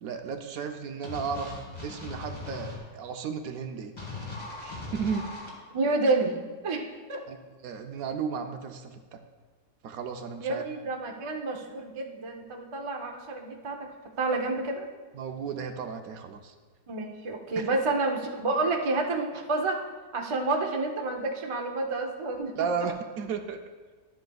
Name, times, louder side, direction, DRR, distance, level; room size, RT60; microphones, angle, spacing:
voice 1, 0.0-1.6 1.8-3.9 4.6-5.3 7.3-7.4 7.6-9.2 9.8-10.6 15.1-16.5 17.6-17.7 22.6-23.6, right 6 dB, 70° right, 6 dB, 1.0 m, -34 dB
sound 1, 1.0-2.8 4.0-5.5, left 3 dB, 15° left, 1.8 m, -39 dB
voice 2, 5.7-6.8 7.1-7.2 10.4-13.9 14.2-14.9 16.9-19.8 20.1-22.5, right 3 dB, 50° right, 2 dB, 0.3 m, -29 dB
11.5 x 7.8 x 2.3 m, 1.4 s
omnidirectional pair, 1.7 m